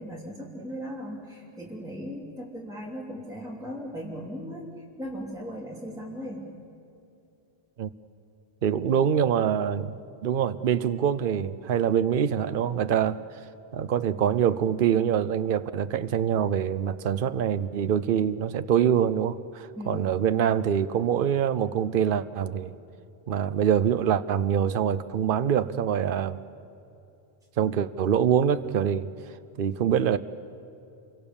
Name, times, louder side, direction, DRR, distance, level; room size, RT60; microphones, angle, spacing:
voice 1, 0.0-4.6 5.0-6.5 19.8-20.1, equal, 5° right, -5 dB, 2.9 m, -37 dB
voice 2, 8.6-10.0 10.2-13.2 13.7-22.7 23.3-26.4 27.6-29.1 29.6-30.2, right 8 dB, 60° right, 14 dB, 0.9 m, -24 dB
28.0 x 23.5 x 7.1 m, 2.7 s
omnidirectional pair, 1.1 m